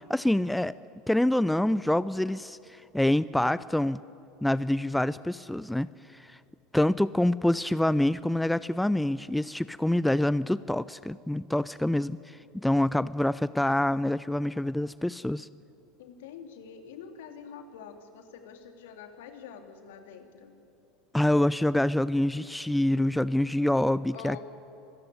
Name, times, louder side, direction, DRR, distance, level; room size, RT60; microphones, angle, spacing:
voice 1, 0.1-0.7 1.1-4.0 4.4-6.4 6.7-15.5 21.1-24.4, left 1 dB, 5° left, 17 dB, 0.4 m, -26 dB
voice 2, 16.0-20.6 24.1-24.4, left 7 dB, 70° left, 6 dB, 2.5 m, -46 dB
25.0 x 14.5 x 9.7 m, 2.6 s
hypercardioid pair, 75°, 0 cm